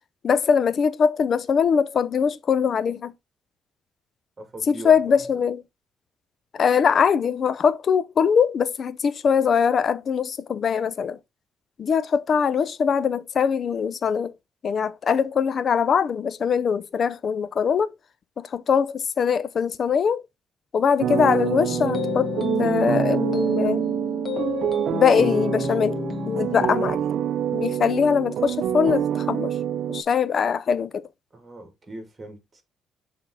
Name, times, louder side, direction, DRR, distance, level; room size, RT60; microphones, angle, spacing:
voice 1, 0.2-3.1 4.7-5.6 6.5-11.2 11.8-14.3 14.6-17.9 18.4-20.2 20.7-22.3 22.6-23.9 24.9-26.0 26.3-27.0 27.5-29.5 29.9-31.1, left 6 dB, 50° left, 0.6 m, -22 dB
voice 2, 4.4-5.4 31.3-32.6, right 1 dB, 25° right, 2.8 m, -39 dB
sound 1, 21.0-30.0, right 9 dB, 70° right, 0.5 m, -26 dB
sound 2, 21.7-26.9, left 5 dB, 35° left, 1.5 m, -31 dB
6.6 x 3.8 x 4.1 m
cardioid pair, 90°, 0 cm